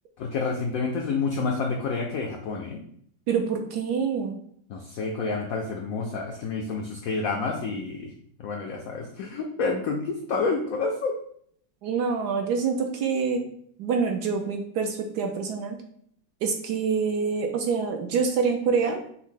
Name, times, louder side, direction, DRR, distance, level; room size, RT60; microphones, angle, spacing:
voice 1, 0.2-2.8 4.7-8.1 8.4-11.2, left 4 dB, 80° left, 1 dB, 0.7 m, -29 dB
voice 2, 3.3-4.4 11.8-13.4 13.8-15.8 16.4-19.0, right 5 dB, 70° right, 4 dB, 1.0 m, -26 dB
6.2 x 2.1 x 3.7 m, 0.65 s
omnidirectional pair, 2.0 m